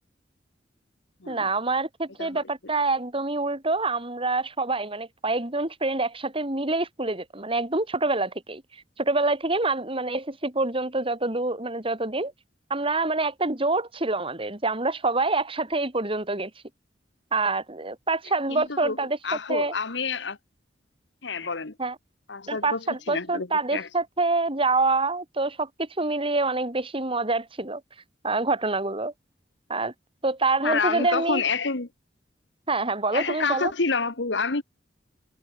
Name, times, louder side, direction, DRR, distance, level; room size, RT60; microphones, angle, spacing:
voice 1, 1.3-8.6 9.0-12.3 12.7-16.5 17.3-19.2 19.5-19.7 21.8-22.0 22.5-27.8 28.2-29.1 29.7-29.9 30.2-31.4 32.7-33.7, right 3 dB, 30° right, 3.9 m, -26 dB
voice 2, 18.5-20.4 21.2-21.7 22.3-23.9 30.6-31.9 33.1-34.6, left 4 dB, 80° left, 1.6 m, -28 dB
head